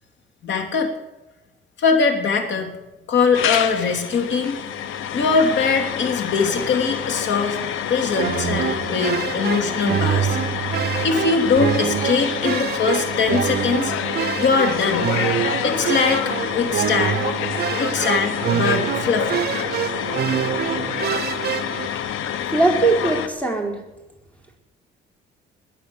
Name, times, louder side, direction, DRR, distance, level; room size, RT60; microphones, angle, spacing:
voice 1, 0.4-0.9 1.8-2.7 3.1-4.6 5.1-7.6 7.9-10.4 11.0-13.9 14.3-15.1 15.6-17.3 17.8-19.4, left 5 dB, 65° left, 5 dB, 3.0 m, -21 dB
sound 1, 3.3-23.3, left 9 dB, 90° left, 1.2 m, -27 dB
sound 2, 8.1-21.9, right 10 dB, 55° right, 0.6 m, -26 dB
voice 2, 22.5-23.8, right 3 dB, 5° left, 2 dB, 4.3 m, -20 dB
21.5 x 8.6 x 7.1 m, 1.0 s
cardioid pair, 90°, 20 cm